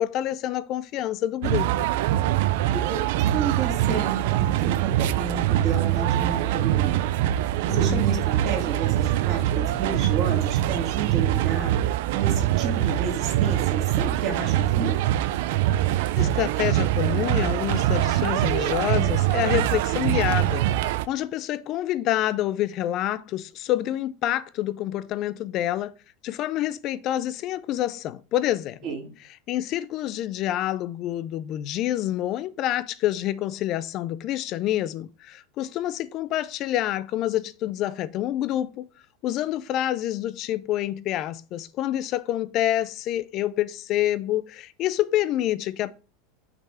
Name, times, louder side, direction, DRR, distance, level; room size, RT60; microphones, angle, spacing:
voice 1, 0.0-1.9 7.7-8.0 16.2-20.6 21.1-25.9 26.2-28.8 29.5-38.9 39.2-45.9, left 13 dB, 45° left, 0.4 m, -27 dB
sound 1, 1.4-21.1, right 13 dB, 70° right, 0.4 m, -23 dB
voice 2, 2.7-7.0 7.6-15.0 28.8-29.1, right 5 dB, 45° right, 2.2 m, -31 dB
6.0 x 3.4 x 5.6 m
supercardioid pair, 115°, 0 cm